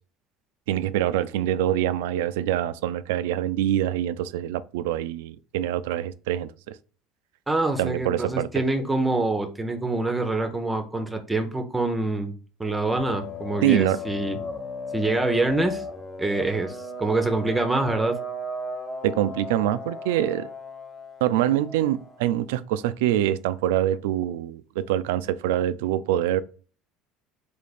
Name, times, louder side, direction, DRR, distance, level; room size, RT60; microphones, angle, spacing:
voice 1, 0.7-6.8 7.8-8.5 13.6-14.0 19.0-20.5 21.2-26.4, right 12 dB, 85° right, 0.3 m, -25 dB
voice 2, 7.5-12.3 12.6-14.4 14.9-15.8 16.2-18.2, right 2 dB, 10° right, 0.6 m, -25 dB
sound 1, 13.0-22.2, left 2 dB, 20° left, 0.8 m, -36 dB
3.3 x 2.8 x 4.1 m
supercardioid pair, 105°, 0 cm